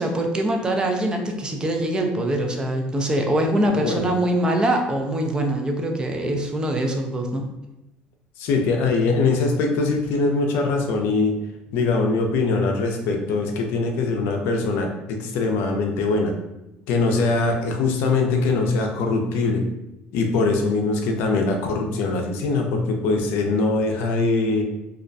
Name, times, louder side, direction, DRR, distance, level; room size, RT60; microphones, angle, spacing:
voice 1, 0.0-7.4, right 1 dB, 20° right, 3 dB, 0.4 m, -23 dB
voice 2, 3.7-4.1 8.4-11.3 11.7-16.3 16.9-19.6 20.1-24.6, left 3 dB, 75° left, 2 dB, 0.4 m, -22 dB
2.3 x 2.1 x 2.5 m, 0.92 s
supercardioid pair, 100°, 4 cm